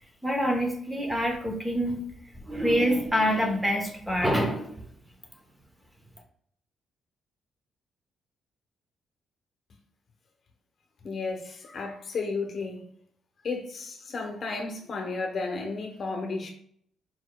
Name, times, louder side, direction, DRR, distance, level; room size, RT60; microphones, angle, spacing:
voice 1, 0.2-2.0 2.4-4.9, equal, 10° right, 0.9 m, -26 dB
voice 2, 11.0-12.8 13.4-16.5, left 3 dB, 50° left, 0.9 m, -33 dB
4.5 x 4.4 x 2.3 m
cardioid pair, 90°, 0 cm